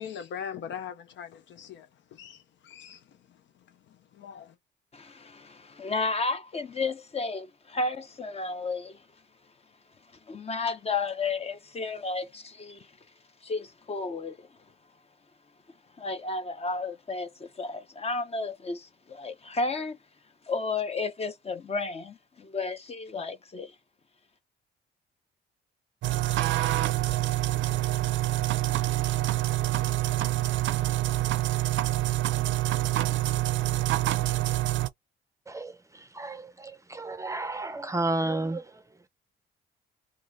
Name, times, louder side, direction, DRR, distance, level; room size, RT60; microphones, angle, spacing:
voice 1, 0.0-3.0 4.1-4.5, left 8 dB, 65° left, 0.6 m, -40 dB
voice 2, 4.9-9.0 10.3-12.9 13.4-14.5 16.0-20.0 20.5-23.7, left 3 dB, 30° left, 0.9 m, -32 dB
sound 1, 26.0-34.9, right 15 dB, 70° right, 0.5 m, -26 dB
voice 3, 35.5-38.7, right 2 dB, 15° right, 0.6 m, -32 dB
3.0 x 2.5 x 3.9 m
cardioid pair, 90°, 20 cm